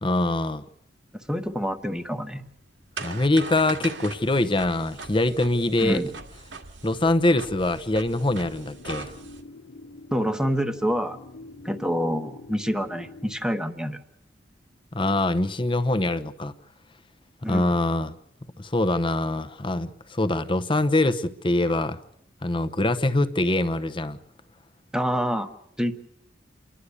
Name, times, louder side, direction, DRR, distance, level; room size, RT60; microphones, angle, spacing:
voice 1, 0.0-0.6 3.0-6.0 6.8-9.1 14.9-16.5 17.4-18.1 18.6-22.0 22.4-24.2, left 2 dB, 25° left, 11 dB, 0.9 m, -24 dB
voice 2, 1.1-2.4 5.8-6.1 10.1-11.2 11.6-14.0 17.4-17.7 24.9-25.5 25.8-26.0, equal, 5° right, 8 dB, 1.0 m, -27 dB
sound 1, 1.3-9.4, right 4 dB, 90° right, 1.9 m, -40 dB
sound 2, 8.1-13.4, left 2 dB, 65° left, 0.9 m, -45 dB
29.0 x 11.5 x 8.3 m, 0.75 s
head